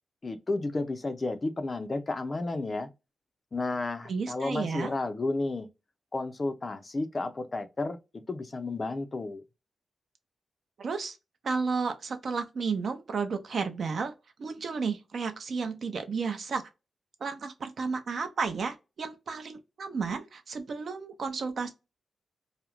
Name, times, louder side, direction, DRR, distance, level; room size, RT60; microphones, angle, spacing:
voice 1, 0.2-2.9 3.5-5.7 6.1-9.4, left 2 dB, 30° left, 0.4 m, -32 dB
voice 2, 4.1-4.9 10.8-11.2 11.4-14.1 14.4-16.6 17.2-21.7, right 5 dB, 55° right, 0.5 m, -32 dB
2.3 x 2.0 x 2.9 m
wide cardioid pair, 140°, 0 cm